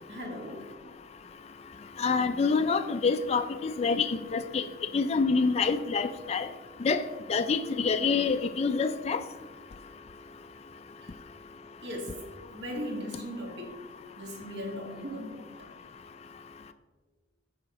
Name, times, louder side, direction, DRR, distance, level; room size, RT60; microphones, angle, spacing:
voice 1, 0.1-0.6 11.8-12.2 12.5-13.7 14.2-15.7, equal, 60° right, 1 dB, 1.7 m, -38 dB
voice 2, 2.0-4.6 4.9-6.5 6.8-7.0 7.3-9.2, left 4 dB, 30° left, 9 dB, 0.3 m, -26 dB
14.0 x 4.9 x 3.0 m, 1.4 s
head